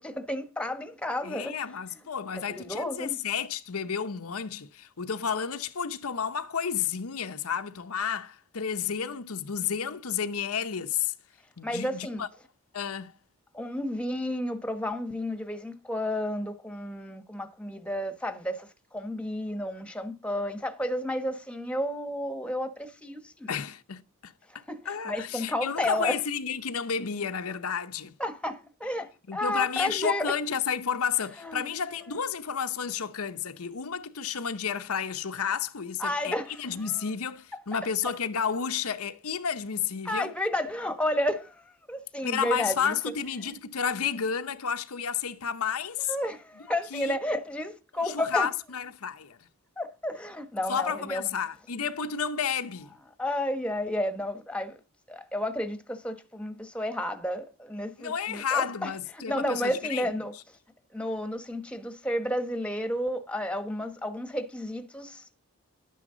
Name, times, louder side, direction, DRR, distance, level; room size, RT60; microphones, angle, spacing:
voice 1, 0.0-1.5 2.3-3.2 11.6-12.2 13.5-23.6 24.7-26.2 28.2-30.3 31.4-32.2 36.0-37.1 37.5-37.6 38.0-38.1 40.0-43.0 43.4-43.6 46.1-48.5 49.8-51.3 53.2-54.8 55.1-60.6 60.9-65.3, left 1 dB, 5° left, 1.2 m, -32 dB
voice 2, 1.2-11.1 11.6-12.3 12.7-13.1 23.5-28.1 29.3-36.3 36.6-40.3 42.2-46.1 46.9-47.2 48.0-49.4 50.7-52.9 58.0-60.1, left 7 dB, 80° left, 0.8 m, -31 dB
11.5 x 9.3 x 3.9 m
head